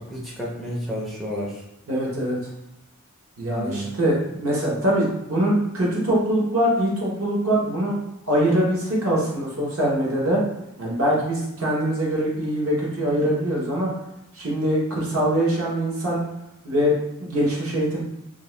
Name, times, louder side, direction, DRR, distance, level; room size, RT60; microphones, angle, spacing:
voice 1, 0.0-1.6 3.5-4.0, equal, ahead, -5 dB, 0.4 m, -31 dB
voice 2, 1.9-2.4 3.4-7.9 8.3-10.4 10.8-13.9 14.3-16.2 16.6-18.0, equal, 65° right, -4 dB, 1.0 m, -23 dB
2.6 x 2.3 x 3.1 m, 0.87 s
head